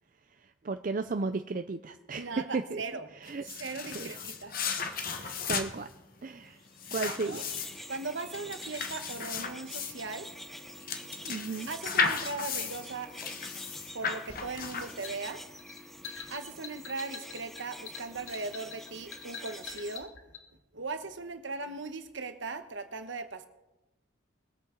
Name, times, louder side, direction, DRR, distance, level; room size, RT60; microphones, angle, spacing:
voice 1, 0.6-2.8 3.2-3.5 3.9-4.2 4.9-5.9 6.2-6.6 6.9-7.4 11.2-11.7, right 4 dB, 40° right, 8 dB, 0.4 m, -34 dB
voice 2, 2.1-3.1 3.4-4.5 6.9-7.4 7.9-10.3 11.7-13.1 13.9-15.4 16.3-20.1 20.7-23.5, right 3 dB, 65° right, 8 dB, 1.1 m, -38 dB
sound 1, 3.2-15.4, left 5 dB, 45° left, 1.1 m, -35 dB
sound 2, 6.7-20.0, equal, ahead, 0.6 m, -47 dB
sound 3, 14.3-20.5, left 6 dB, 85° left, 1.8 m, -45 dB
22.0 x 8.3 x 3.9 m, 0.98 s
head